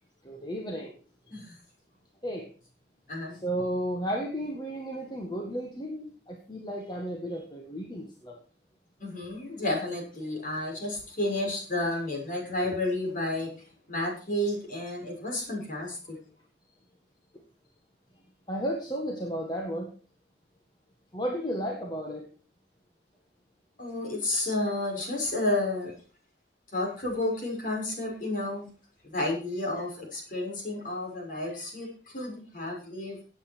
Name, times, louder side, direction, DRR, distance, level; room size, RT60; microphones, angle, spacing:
voice 1, 0.2-0.9 1.3-1.4 2.2-2.5 3.4-8.4 12.6-12.8 18.5-19.9 21.1-22.3, equal, 25° left, 1 dB, 1.7 m, -33 dB
voice 2, 9.0-13.5 13.9-16.2 23.8-25.9 26.7-28.7 29.0-33.2, left 1 dB, 45° left, 0 dB, 6.1 m, -31 dB
17.0 x 8.5 x 4.6 m, 0.37 s
head